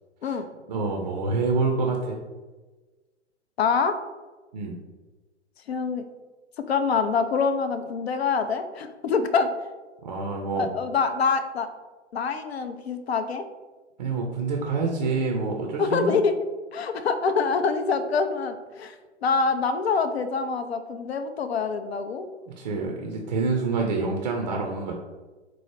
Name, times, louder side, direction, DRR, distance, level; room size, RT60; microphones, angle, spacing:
voice 1, 0.7-2.2 4.5-4.8 10.0-10.7 14.0-16.1 22.6-24.9, right 4 dB, 40° right, 0 dB, 0.5 m, -27 dB
voice 2, 3.6-4.0 5.7-6.1 6.6-9.5 10.5-11.7 12.1-13.4 15.8-16.3 16.7-19.0 19.2-22.3, left 5 dB, 60° left, 9 dB, 0.5 m, -25 dB
4.6 x 2.0 x 4.4 m, 1.2 s
figure-of-eight pair, 115°, 36 cm